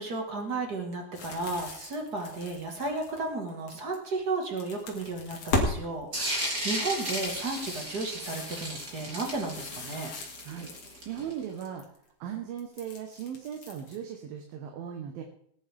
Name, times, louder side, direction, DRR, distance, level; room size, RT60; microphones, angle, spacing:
voice 1, 0.0-10.1, right 3 dB, 50° right, 2 dB, 1.2 m, -34 dB
sound 1, 1.1-4.0 4.4-5.7 6.1-11.1 11.4-12.0 12.6-14.0, left 3 dB, 45° left, 2.5 m, -37 dB
sound 2, 6.1-11.4, right 1 dB, 25° right, 3.0 m, -34 dB
voice 2, 11.1-11.8 12.2-15.2, right 9 dB, 70° right, 3 dB, 2.9 m, -38 dB
19.0 x 9.8 x 3.5 m, 0.67 s
omnidirectional pair, 4.5 m